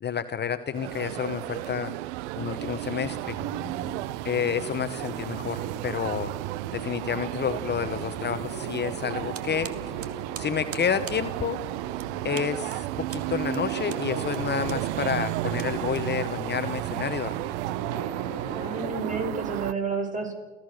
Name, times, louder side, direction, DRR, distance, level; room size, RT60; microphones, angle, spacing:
voice 1, 0.0-1.9 2.4-3.4 4.2-6.3 6.7-9.9 10.4-11.6 12.2-17.5, left 7 dB, 30° left, 10 dB, 1.1 m, -30 dB
sound 1, 0.7-19.7, right 18 dB, 80° right, 0.7 m, -33 dB
sound 2, 3.1-19.3, right 6 dB, 60° right, 3.5 m, -39 dB
sound 3, 9.3-16.5, right 7 dB, 40° right, 2.3 m, -44 dB
voice 2, 18.6-20.3, right 4 dB, 20° right, 5 dB, 7.2 m, -30 dB
29.5 x 15.0 x 6.6 m, 1.2 s
hypercardioid pair, 85°, 34 cm